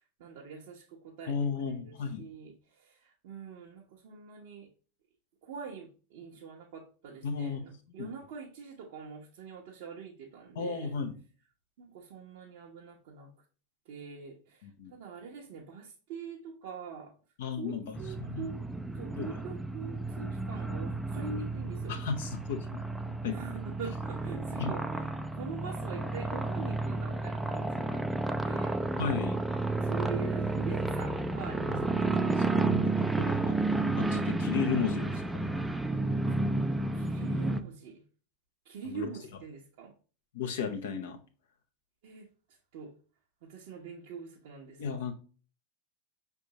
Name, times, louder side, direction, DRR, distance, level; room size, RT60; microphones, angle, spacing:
voice 1, 0.2-4.7 5.4-10.9 11.8-13.3 13.8-17.1 17.6-18.6 18.9-22.0 23.3-28.8 29.8-32.1 36.3-36.4 36.9-38.0 38.6-39.9 42.0-42.3 42.7-42.9 43.4-45.0, right 5 dB, 65° right, -3 dB, 1.0 m, -44 dB
voice 2, 1.3-2.3 7.2-7.6 8.0-8.1 10.6-11.2 14.6-14.9 17.4-17.9 18.2-18.5 19.2-19.3 21.9-22.8 23.2-23.4 24.6-24.7 29.0-29.4 31.7-31.8 32.2-33.6 34.0-35.2 38.8-39.1 40.3-41.2 44.8-45.1, left 6 dB, 70° left, 5 dB, 1.0 m, -34 dB
sound 1, 17.9-37.6, right 2 dB, 5° right, 0.5 m, -31 dB
5.3 x 3.5 x 2.9 m, 0.38 s
hypercardioid pair, 95°, 0 cm